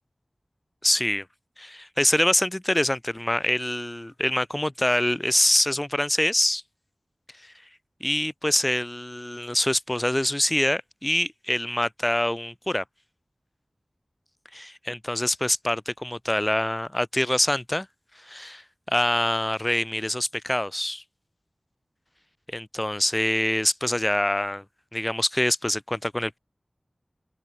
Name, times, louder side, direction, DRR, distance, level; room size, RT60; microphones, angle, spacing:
voice 1, 0.8-1.3 1.6-6.6 7.4-7.5 8.0-12.8 14.5-17.9 18.2-21.0 22.5-24.6 24.9-26.4, left 1 dB, 20° left, 3.4 m, -25 dB
wide cardioid pair, 55°, 0 cm